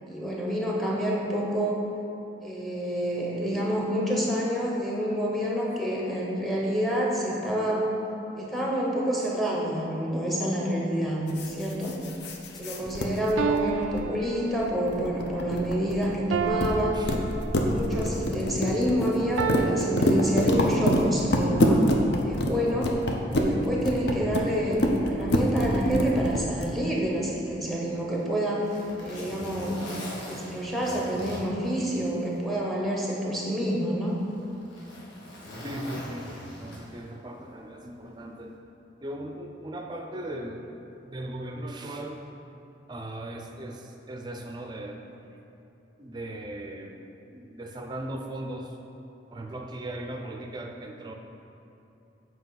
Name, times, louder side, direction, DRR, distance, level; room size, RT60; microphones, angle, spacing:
voice 1, 0.1-1.8 2.4-7.9 8.3-12.0 12.6-17.0 17.6-21.8 22.2-23.0 23.3-28.7 29.0-29.8 30.3-34.2, equal, ahead, -3 dB, 0.9 m, -28 dB
sound 1, 11.3-14.3 14.5-16.1 16.4-22.5 22.8-23.5 23.8-26.6, left 1 dB, 60° left, 0.6 m, -26 dB
sound 2, 12.6-12.7 13.4-15.0 16.3-17.9 19.4-21.0, right 7 dB, 85° right, 0.3 m, -32 dB
voice 2, 12.8-13.1 16.9-17.1 35.6-36.3 36.6-38.5 39.0-40.7 41.0-42.2 42.9-45.0 46.0-47.0 47.3-48.7 49.3-51.1, right 1 dB, 25° right, 3 dB, 0.4 m, -38 dB
Zipper (clothing), 27.9-32.4 32.8-32.9 33.7-37.2 38.3-38.5, equal, 85° left, 1.5 m, -42 dB
7.9 x 4.6 x 4.0 m, 2.9 s
head